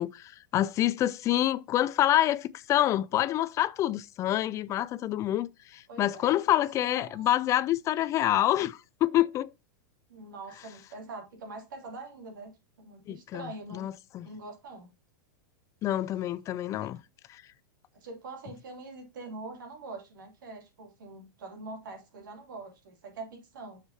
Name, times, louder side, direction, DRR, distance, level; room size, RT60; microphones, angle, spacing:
voice 1, 0.0-5.5 5.7-9.5 13.1-13.5 13.7-14.3 15.8-17.0, left 13 dB, 30° left, 0.3 m, -27 dB
voice 2, 5.9-6.4 6.8-7.3 10.1-12.5 12.8-13.9 14.2-14.9 16.8-16.9 17.9-23.8, right 3 dB, 80° right, 2.8 m, -44 dB
6.6 x 6.5 x 2.8 m
hypercardioid pair, 125°, 11 cm